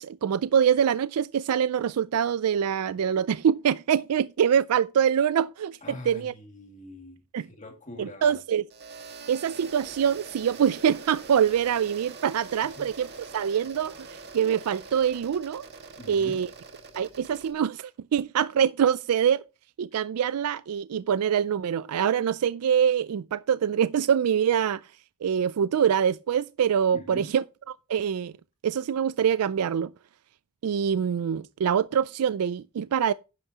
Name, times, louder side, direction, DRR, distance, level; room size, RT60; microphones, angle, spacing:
voice 1, 0.0-5.8 6.0-6.3 7.3-7.5 8.0-8.7 9.3-15.6 16.1-16.5 17.0-19.4 19.8-24.9 25.2-28.3 28.6-29.9 30.6-33.1, right 8 dB, 90° right, 0.4 m, -25 dB
voice 2, 5.8-7.2 7.5-8.4 12.6-12.9 16.0-16.4 26.9-27.3, left 2 dB, 35° left, 2.4 m, -43 dB
sound 1, 8.7-17.5, right 4 dB, 50° right, 1.9 m, -44 dB
11.0 x 9.5 x 2.9 m
head